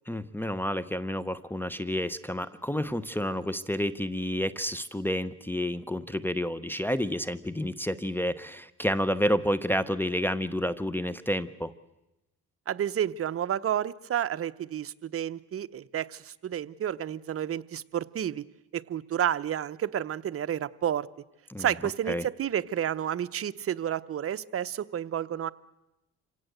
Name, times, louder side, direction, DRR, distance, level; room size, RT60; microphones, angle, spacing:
voice 1, 0.1-11.7 21.5-21.7 22.1-22.2, equal, 5° left, 16 dB, 0.8 m, -30 dB
voice 2, 12.7-18.4 18.7-21.1 21.6-25.5, right 10 dB, 50° right, 13 dB, 0.8 m, -30 dB
26.5 x 17.5 x 8.0 m, 0.97 s
cardioid pair, 90°, 30 cm